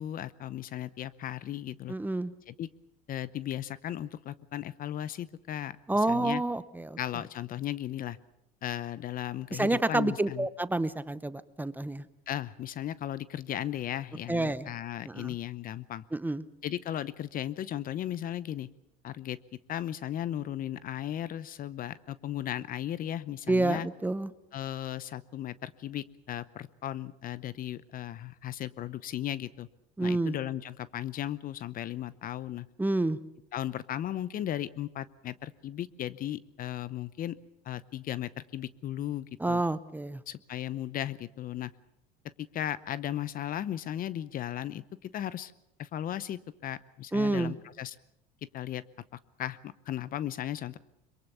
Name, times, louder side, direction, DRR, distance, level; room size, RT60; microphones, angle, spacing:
voice 1, 0.0-1.9 2.5-2.7 3.1-6.4 7.0-8.2 8.6-10.5 12.3-16.0 16.6-18.7 19.0-19.4 19.7-23.9 24.5-29.7 30.0-32.7 33.5-37.4 37.6-39.6 40.3-41.7 42.4-45.5 45.8-48.0 48.5-48.8 49.4-50.8, left 11 dB, 40° left, 18 dB, 0.8 m, -36 dB
voice 2, 1.9-2.3 5.9-7.0 9.5-12.1 14.3-14.7 15.1-15.3 16.1-16.4 23.5-24.3 30.0-30.4 32.8-33.2 39.4-40.2 47.1-47.5, right 2 dB, 10° right, 15 dB, 0.8 m, -29 dB
23.0 x 22.5 x 6.8 m, 0.82 s
supercardioid pair, 105°, 21 cm